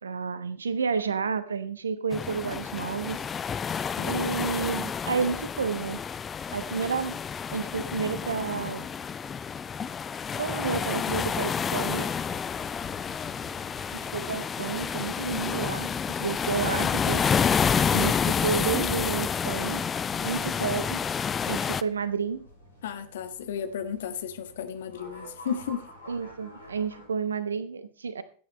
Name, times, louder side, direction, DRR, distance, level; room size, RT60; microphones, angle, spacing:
voice 1, 0.0-3.2 4.0-6.0 6.5-7.2 7.5-8.9 10.4-12.1 13.9-17.2 17.9-19.8 20.2-21.0 21.5-22.5 26.1-28.2, right 5 dB, 70° right, 1.0 m, -30 dB
sound 1, 2.1-21.8, left 7 dB, 20° left, 0.5 m, -29 dB
sound 2, 11.1-27.1, equal, 75° left, 7.1 m, -52 dB
voice 2, 22.8-25.9, left 8 dB, 60° left, 1.4 m, -34 dB
15.5 x 9.6 x 3.2 m
figure-of-eight pair, 90°, 0 cm